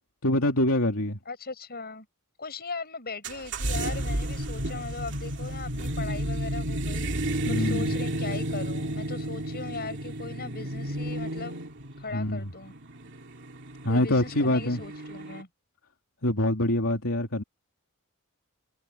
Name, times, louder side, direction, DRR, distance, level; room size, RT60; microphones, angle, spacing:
voice 1, 0.2-1.2 7.4-7.9 12.1-12.5 13.8-14.8 16.2-17.4, left 1 dB, 70° left, 3.1 m, -25 dB
voice 2, 1.3-2.1 2.4-11.6 12.0-12.7 13.9-15.5, left 4 dB, 45° left, 7.4 m, -39 dB
sound 1, 3.2-15.4, right 1 dB, 55° right, 2.6 m, -32 dB
head